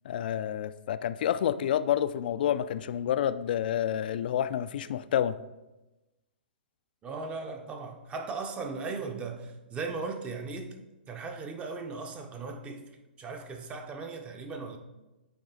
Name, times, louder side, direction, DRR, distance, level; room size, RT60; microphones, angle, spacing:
voice 1, 0.0-5.4, left 10 dB, 60° left, 0.3 m, -29 dB
voice 2, 7.0-10.8 11.1-12.9 13.2-14.8, right 4 dB, 20° right, 0.7 m, -37 dB
8.6 x 3.0 x 4.0 m
hypercardioid pair, 125°, 6 cm